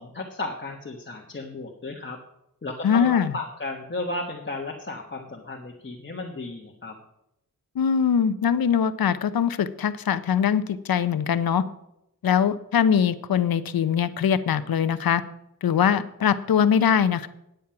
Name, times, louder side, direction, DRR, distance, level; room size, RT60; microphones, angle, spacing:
voice 1, 0.0-2.2 2.6-6.9, left 2 dB, 35° left, 0 dB, 1.3 m, -34 dB
voice 2, 2.8-3.3 7.8-11.6 12.2-15.2 15.6-17.3, left 8 dB, 90° left, 14 dB, 0.7 m, -22 dB
9.6 x 9.1 x 5.7 m, 0.83 s
wide cardioid pair, 85°, 34 cm